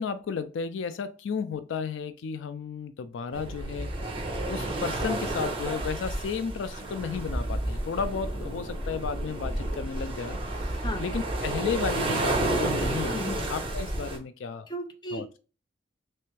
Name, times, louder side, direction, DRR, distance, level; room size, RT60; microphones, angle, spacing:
voice 1, 0.0-3.9 4.5-14.7 15.1-15.2, left 6 dB, 75° left, 0.4 m, -33 dB
sound 1, 3.3-14.2, right 2 dB, 30° right, 0.9 m, -31 dB
voice 2, 13.1-13.5 14.7-15.4, left 1 dB, 25° left, 0.5 m, -35 dB
3.4 x 3.2 x 3.2 m
head